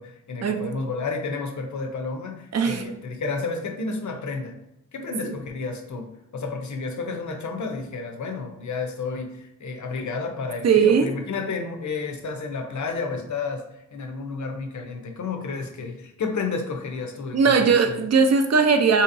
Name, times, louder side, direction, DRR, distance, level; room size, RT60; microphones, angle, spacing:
voice 1, 0.0-4.5 4.9-6.1 6.3-18.0, left 4 dB, 70° left, 4 dB, 0.6 m, -31 dB
voice 2, 2.5-3.0 5.2-5.4 10.6-11.1 17.3-19.0, right 5 dB, 60° right, 6 dB, 0.5 m, -19 dB
3.9 x 2.8 x 2.5 m, 0.83 s
cardioid pair, 65°, 30 cm